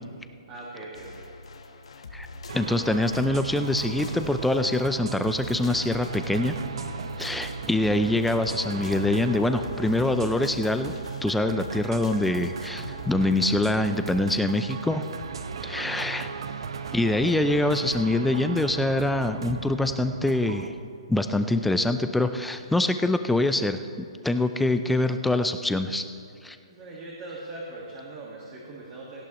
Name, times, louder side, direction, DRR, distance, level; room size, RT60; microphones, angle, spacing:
voice 1, 0.5-1.3 15.6-16.1 26.7-29.3, right 2 dB, 20° right, -4 dB, 1.6 m, -41 dB
sound 1, 0.9-13.1, left 2 dB, 85° left, 1.2 m, -43 dB
voice 2, 2.5-6.6 7.2-10.9 11.2-15.0 15.6-16.3 16.9-20.7 21.1-23.8 24.2-26.0 26.4-26.6, left 2 dB, ahead, 9 dB, 0.3 m, -24 dB
sound 2, 2.5-20.7, right 5 dB, 55° right, 0.8 m, -37 dB
sound 3, 15.2-16.2 16.7-16.8 16.9-17.7 18.1-18.4 18.7-18.8 19.3-19.9 20.4-20.5, left 4 dB, 30° left, 1.3 m, -43 dB
17.5 x 15.0 x 3.0 m, 2.3 s
hypercardioid pair, 170°, 3 cm